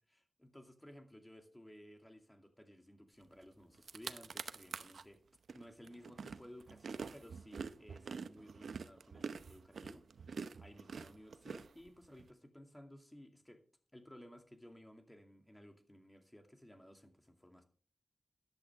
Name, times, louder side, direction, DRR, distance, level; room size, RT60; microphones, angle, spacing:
voice 1, 0.1-5.2 5.5-13.6 13.9-17.6, equal, 10° left, 5 dB, 2.4 m, -57 dB
sound 1, 3.4-3.5 3.7-5.0 5.5-12.2, right 5 dB, 85° right, 0.7 m, -46 dB
14.0 x 10.5 x 3.6 m, 0.41 s
wide cardioid pair, 100°, 0 cm